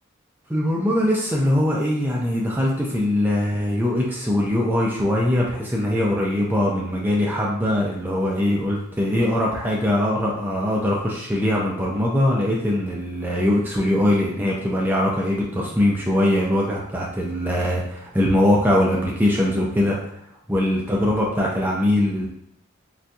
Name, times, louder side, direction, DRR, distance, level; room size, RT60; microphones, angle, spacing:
voice 1, 0.5-20.0 20.5-22.3, left 1 dB, 10° right, -3 dB, 0.3 m, -21 dB
3.9 x 2.6 x 2.3 m, 0.74 s
head